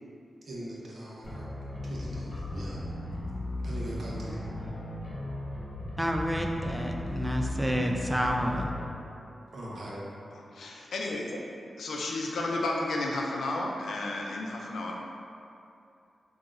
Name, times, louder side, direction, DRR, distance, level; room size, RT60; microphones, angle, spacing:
voice 1, 0.4-1.5 1.8-2.8 3.6-4.4 9.5-10.1, right 1 dB, 70° right, -6 dB, 0.9 m, -41 dB
sound 1, 1.2-8.8, left 1 dB, 40° left, 1.1 m, -36 dB
voice 2, 6.0-8.7, equal, 10° right, 1 dB, 0.4 m, -29 dB
voice 3, 10.3-11.4 11.8-15.0, left 2 dB, 85° left, -1 dB, 0.5 m, -32 dB
5.9 x 2.9 x 2.5 m, 2.6 s
cardioid pair, 60°, 0 cm